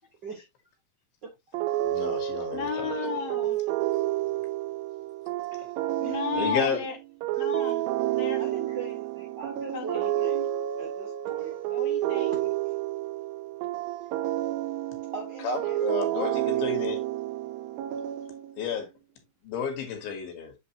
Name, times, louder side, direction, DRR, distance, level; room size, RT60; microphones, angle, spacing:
sound 1, 1.5-18.7, right 14 dB, 90° right, 2.4 m, -30 dB
voice 1, 1.8-2.9 6.3-6.8 15.4-17.2 18.6-18.9 19.4-20.5, left 6 dB, 85° left, 3.3 m, -31 dB
voice 2, 2.5-3.6 6.0-7.0 7.4-8.4 9.7-10.1 11.7-12.4, left 5 dB, 65° left, 1.9 m, -33 dB
voice 3, 8.4-10.5 10.8-11.5 15.1-16.4, right 4 dB, 55° right, 1.2 m, -40 dB
8.4 x 4.1 x 2.9 m
omnidirectional pair, 4.1 m